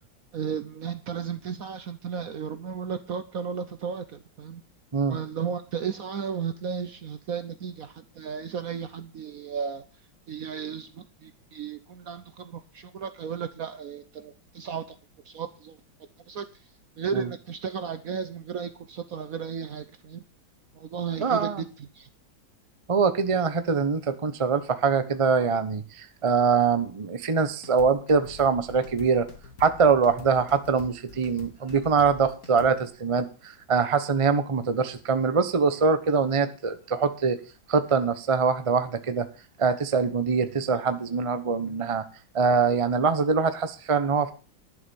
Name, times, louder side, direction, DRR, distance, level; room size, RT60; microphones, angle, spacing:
voice 1, 0.3-4.6 5.1-9.8 10.3-15.0 15.2-15.8 16.3-16.4 17.0-20.2 20.7-22.1, right 7 dB, 60° right, 11 dB, 1.0 m, -34 dB
voice 2, 21.2-21.6 22.9-29.3 29.6-37.4 37.7-39.3 39.6-42.0 42.3-44.3, right 5 dB, 30° right, 11 dB, 0.6 m, -23 dB
sound 1, 27.5-32.8, left 5 dB, 50° left, 2.0 m, -45 dB
11.0 x 6.9 x 7.0 m, 0.35 s
omnidirectional pair, 2.1 m